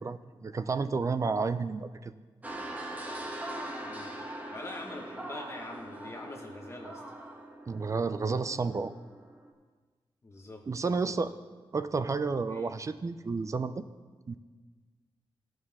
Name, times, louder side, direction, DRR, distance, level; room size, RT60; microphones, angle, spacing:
voice 1, 0.0-2.1 7.7-8.9 10.7-11.3 11.7-13.8 14.3-14.4, right 4 dB, 35° right, 11 dB, 0.4 m, -31 dB
sound 1, 2.4-9.5, right 1 dB, 15° right, 1.2 m, -42 dB
voice 2, 3.8-4.1 4.5-7.0 10.2-10.6 11.0-11.1 12.5-12.7, left 2 dB, 30° left, 1 dB, 1.4 m, -44 dB
16.0 x 6.4 x 3.6 m, 1.4 s
wide cardioid pair, 145°, 9 cm